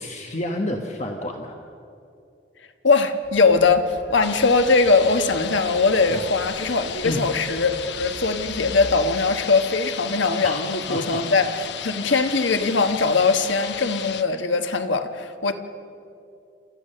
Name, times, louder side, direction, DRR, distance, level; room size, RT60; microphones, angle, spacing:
voice 1, 0.0-1.6 6.1-6.3 7.0-7.2 10.4-10.6 10.9-11.2 12.1-12.2, left 1 dB, 40° left, 3 dB, 1.2 m, -29 dB
voice 2, 2.8-15.5, left 4 dB, 80° left, 8 dB, 1.2 m, -21 dB
sound 1, 3.2-9.1, equal, 65° right, 6.1 m, -43 dB
sound 2, 4.2-14.2, left 8 dB, 65° left, 0.8 m, -34 dB
28.5 x 14.0 x 6.7 m, 2.5 s
head